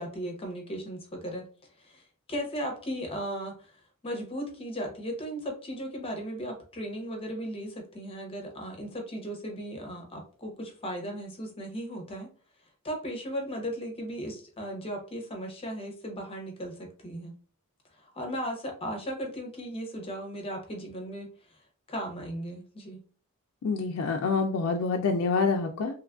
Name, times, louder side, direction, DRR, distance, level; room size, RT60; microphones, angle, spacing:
voice 1, 0.0-1.5 1.8-2.0 2.3-3.7 4.0-12.3 12.8-17.3 18.0-21.6 21.9-23.0, equal, 25° left, 2 dB, 0.6 m, -36 dB
voice 2, 23.6-25.9, left 4 dB, 70° left, 3 dB, 0.3 m, -27 dB
3.0 x 2.3 x 2.2 m, 0.41 s
head